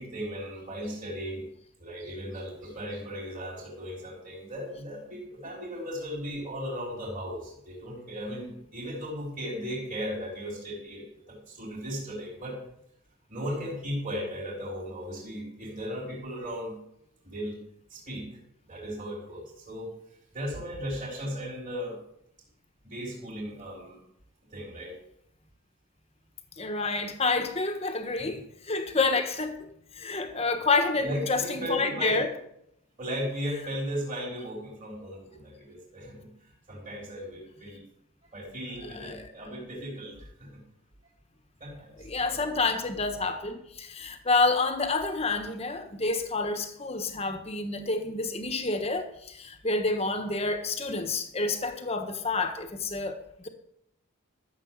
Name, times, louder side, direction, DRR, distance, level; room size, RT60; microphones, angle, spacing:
voice 1, 0.0-1.5 1.8-12.6 13.3-16.8 17.2-17.6 17.9-18.4 18.6-19.9 20.3-22.0 22.8-24.0 24.5-25.0 28.2-28.4 30.9-32.3 33.0-36.3 36.7-37.8 38.3-40.6 41.6-42.0 42.3-42.4, equal, 35° right, 3.9 m, -36 dB
voice 2, 26.6-32.3 39.0-39.2 42.0-53.5, left 3 dB, 30° left, 1.3 m, -29 dB
13.5 x 7.2 x 7.4 m
head